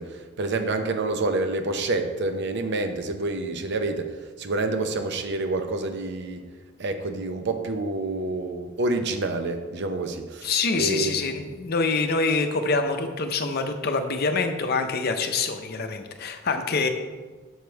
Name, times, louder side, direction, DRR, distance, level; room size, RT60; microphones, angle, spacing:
voice 1, 0.0-6.5 6.8-11.4, right 2 dB, 55° right, 7 dB, 0.6 m, -28 dB
voice 2, 10.4-16.9, left 4 dB, 50° left, 6 dB, 0.6 m, -25 dB
6.4 x 5.1 x 4.5 m, 1.4 s
head